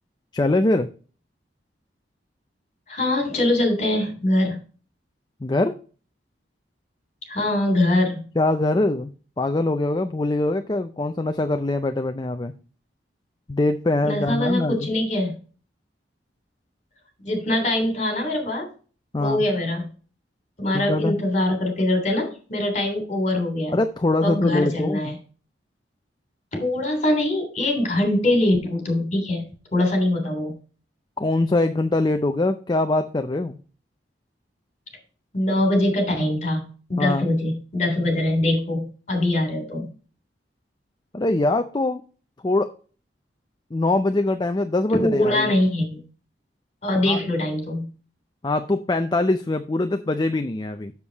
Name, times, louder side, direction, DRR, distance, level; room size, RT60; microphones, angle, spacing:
voice 1, 0.3-0.9 5.4-5.8 8.4-9.1 9.4-12.5 13.5-14.9 19.1-19.4 20.7-21.1 23.7-25.2 31.2-33.6 37.0-37.3 41.1-42.0 42.4-42.7 43.7-45.5 47.1-47.2 48.4-50.9, left 2 dB, 25° left, 7 dB, 0.5 m, -23 dB
voice 2, 2.9-4.6 7.3-8.2 14.0-15.3 17.2-18.7 19.2-19.9 20.6-23.8 24.2-25.1 26.6-29.4 29.7-30.5 35.3-36.6 36.9-39.9 44.9-46.0 46.8-47.9, left 1 dB, 40° left, 3 dB, 3.2 m, -23 dB
7.2 x 6.8 x 4.0 m, 0.38 s
head